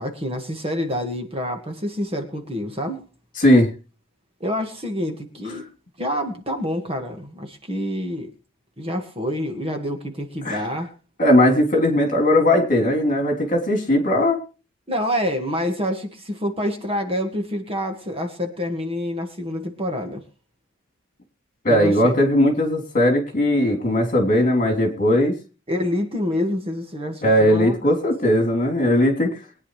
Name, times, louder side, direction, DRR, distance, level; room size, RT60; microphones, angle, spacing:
voice 1, 0.0-3.1 4.4-5.7 6.0-8.3 8.8-10.9 14.9-20.2 21.7-22.2 25.7-28.0, equal, 30° right, 1.9 m, -27 dB
voice 2, 3.4-3.7 10.4-10.7 11.2-14.4 21.6-25.4 27.2-29.4, left 1 dB, 40° left, 3.4 m, -18 dB
22.5 x 9.8 x 3.3 m
head